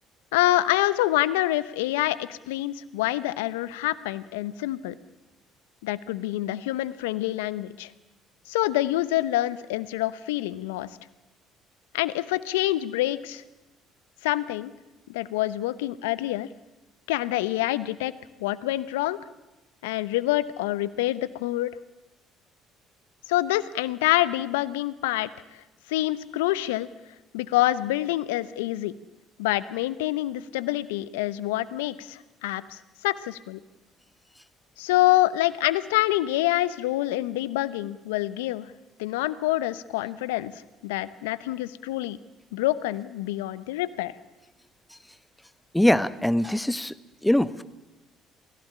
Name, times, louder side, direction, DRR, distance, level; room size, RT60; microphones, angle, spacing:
voice 1, 0.3-4.9 5.8-7.9 8.5-10.9 11.9-13.4 14.2-14.7 15.1-16.5 17.1-18.1 18.4-19.2 19.8-21.7 23.3-25.3 25.9-26.9 27.3-28.9 29.4-33.6 34.8-38.7 39.0-40.5 40.8-42.2 42.5-44.1, left 16 dB, 80° left, 17 dB, 0.8 m, -26 dB
voice 2, 45.7-46.9 47.2-47.6, left 1 dB, 5° left, 14 dB, 1.2 m, -22 dB
23.0 x 16.0 x 9.9 m, 1.1 s
hypercardioid pair, 55°, 0 cm